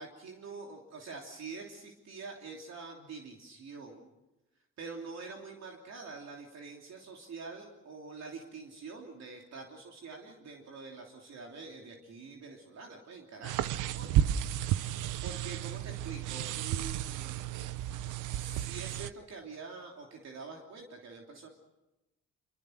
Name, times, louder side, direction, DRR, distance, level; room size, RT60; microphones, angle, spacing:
voice 1, 0.0-4.1 4.8-14.1 15.2-17.7 18.3-21.5, right 4 dB, 60° right, 0 dB, 3.1 m, -46 dB
sound 1, 13.4-19.1, right 11 dB, 90° right, 0.9 m, -32 dB
26.0 x 23.5 x 6.5 m, 1.0 s
cardioid pair, 90°, 30 cm